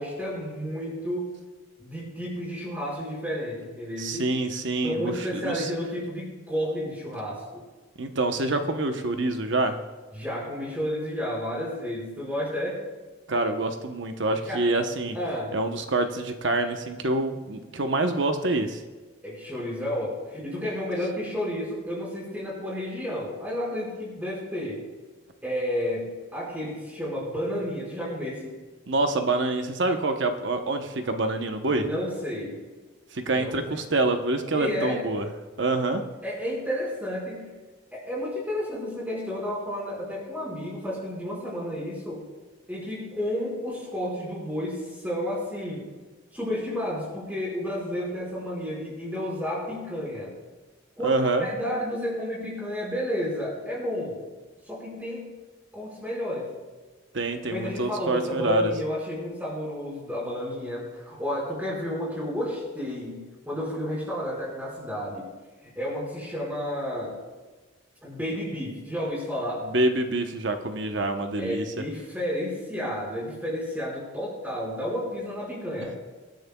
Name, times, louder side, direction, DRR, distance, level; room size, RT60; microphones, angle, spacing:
voice 1, 0.0-1.3 1.8-4.3 4.8-7.6 10.1-12.8 14.5-14.6 15.1-15.5 19.2-24.8 25.4-28.5 31.7-32.6 33.3-33.8 34.5-35.0 36.2-37.6 37.9-42.2 42.7-45.8 46.3-50.3 51.0-54.2 54.7-55.4 55.7-56.5 57.5-65.2 65.7-67.1 68.0-69.7 71.4-76.0, equal, 10° right, -5 dB, 4.8 m, -31 dB
voice 2, 4.0-5.7 8.0-9.8 13.3-15.2 15.5-18.8 28.9-31.9 33.1-35.3 35.6-36.0 51.0-51.5 57.1-58.7 69.6-71.6, right 2 dB, 60° right, 6 dB, 0.9 m, -26 dB
24.5 x 10.5 x 2.3 m, 1.3 s
head